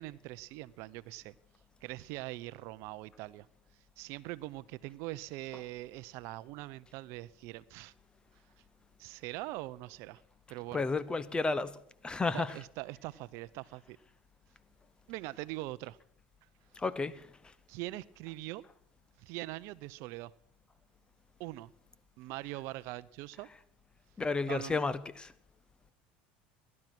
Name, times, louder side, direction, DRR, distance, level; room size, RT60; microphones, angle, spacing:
voice 1, 0.0-1.3 1.8-3.5 4.0-7.9 9.0-10.2 10.5-10.8 12.3-14.0 15.1-16.0 17.7-18.6 19.2-20.3 21.4-21.7 22.2-23.5 24.5-24.8, right 18 dB, 65° right, 0.6 m, -42 dB
voice 2, 10.7-12.5 16.8-17.3 24.2-25.3, left 3 dB, 20° left, 0.9 m, -32 dB
18.0 x 12.0 x 6.1 m
supercardioid pair, 100°, 5 cm